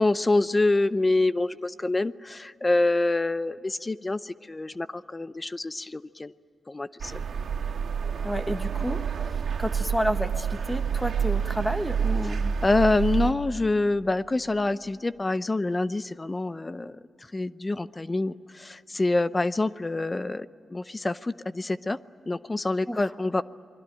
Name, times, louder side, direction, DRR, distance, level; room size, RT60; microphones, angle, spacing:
voice 1, 0.0-6.3 6.7-7.2 12.2-12.3 12.6-17.0 17.3-22.0 22.3-23.4, left 2 dB, 25° left, 15 dB, 0.6 m, -26 dB
sound 1, 7.0-13.3, right 7 dB, 80° right, 2.3 m, -28 dB
voice 2, 8.2-12.6 22.9-23.1, equal, 5° left, 7 dB, 1.5 m, -31 dB
28.5 x 22.0 x 9.1 m, 2.7 s
cardioid pair, 80°, 0 cm